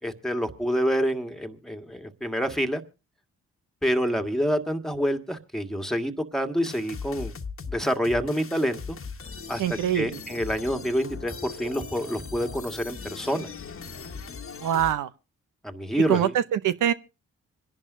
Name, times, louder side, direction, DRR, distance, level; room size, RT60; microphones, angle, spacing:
voice 1, 0.0-2.8 3.8-7.3 7.7-9.0 9.5-9.6 9.9-13.5 15.6-16.3, equal, ahead, 1.8 m, -27 dB
sound 1, 6.6-14.9, left 5 dB, 45° left, 1.5 m, -39 dB
voice 2, 9.6-10.2 14.6-15.1 16.1-16.9, right 10 dB, 70° right, 0.9 m, -24 dB
26.5 x 11.0 x 2.7 m
hypercardioid pair, 45°, 32 cm